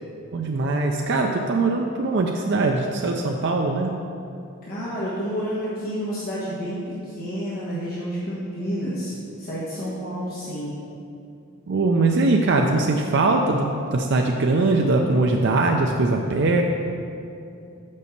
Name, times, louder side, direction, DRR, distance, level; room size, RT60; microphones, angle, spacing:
voice 1, 0.3-3.9 11.7-16.6, right 3 dB, 55° right, 2 dB, 0.4 m, -21 dB
voice 2, 4.6-10.8, equal, 45° left, -9 dB, 1.3 m, -30 dB
5.4 x 5.3 x 6.6 m, 2.6 s
head